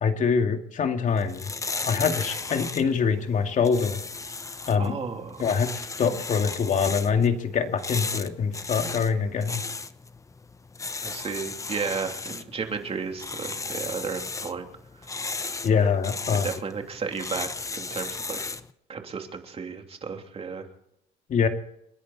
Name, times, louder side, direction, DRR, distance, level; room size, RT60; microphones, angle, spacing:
voice 1, 0.0-1.5 1.9-4.0 4.7-5.0 5.4-9.6 15.6-16.5 21.3-21.5, left 6 dB, 50° left, 5 dB, 2.4 m, -24 dB
sound 1, 1.1-18.7, left 4 dB, 20° left, 0.9 m, -36 dB
voice 2, 4.8-5.5 11.0-14.7 16.3-18.4 18.9-20.7, right 5 dB, 35° right, 4 dB, 3.1 m, -33 dB
30.0 x 10.5 x 4.2 m, 0.76 s
cardioid pair, 110°, 17 cm